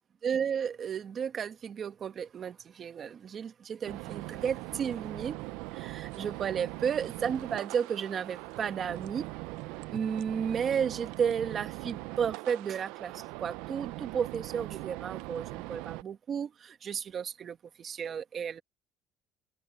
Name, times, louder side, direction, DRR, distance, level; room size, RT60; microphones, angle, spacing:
voice 1, 0.2-5.4 5.7-9.3 9.9-18.6, right 7 dB, 40° right, 1.3 m, -33 dB
sound 1, 3.8-16.0, right 21 dB, 90° right, 0.5 m, -41 dB
cardioid pair, 130°, 0 cm